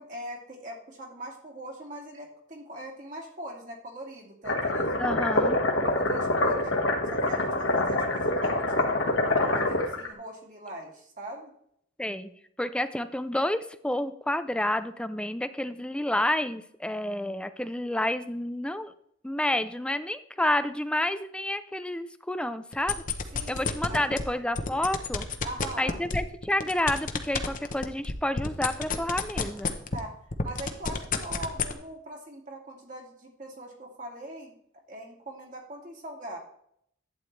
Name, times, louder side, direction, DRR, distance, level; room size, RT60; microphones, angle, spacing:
voice 1, 0.0-5.5 5.9-6.7 7.1-11.5 23.3-23.6 23.9-24.1 25.4-26.0 29.9-34.6 34.9-36.4, right 1 dB, 40° right, 0 dB, 2.3 m, -41 dB
sound 1, 4.5-10.1, left 2 dB, 65° left, 1.6 m, -26 dB
voice 2, 5.0-5.6 12.0-18.9 19.2-23.0 23.5-25.2 25.8-29.7, left 1 dB, 5° left, 12 dB, 0.4 m, -29 dB
sound 2, 22.7-24.2 24.6-30.1 30.3-31.7, left 5 dB, 40° left, 0.9 m, -29 dB
11.5 x 8.9 x 3.3 m, 0.69 s
head